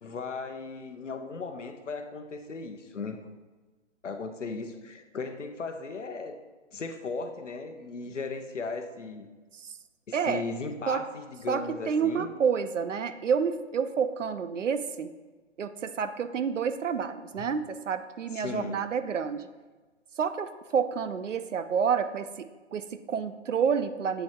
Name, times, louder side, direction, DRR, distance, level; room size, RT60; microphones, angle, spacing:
voice 1, 0.0-3.2 4.0-6.4 6.7-9.3 10.1-12.3 17.4-17.5 18.3-18.8, left 4 dB, 80° left, 7 dB, 0.8 m, -37 dB
voice 2, 10.1-10.4 10.9-11.0 11.5-15.1 15.6-19.5 20.2-24.2, right 6 dB, 80° right, 10 dB, 0.6 m, -29 dB
7.9 x 3.2 x 4.3 m, 1.3 s
figure-of-eight pair, 140°, 36 cm